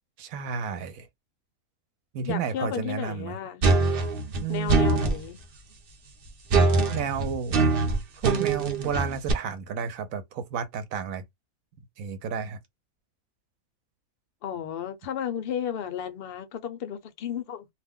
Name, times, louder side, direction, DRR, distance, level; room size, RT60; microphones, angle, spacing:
voice 1, 0.2-1.1 2.1-3.4 4.4-5.2 6.9-7.7 8.2-11.2 12.0-12.6, right 7 dB, 75° right, 1.0 m, -32 dB
voice 2, 2.2-3.7 4.5-5.4 14.4-17.7, left 9 dB, 60° left, 0.6 m, -33 dB
sound 1, 3.6-5.2 6.5-9.3, right 3 dB, 55° right, 0.6 m, -23 dB
2.5 x 2.1 x 3.5 m
omnidirectional pair, 1.5 m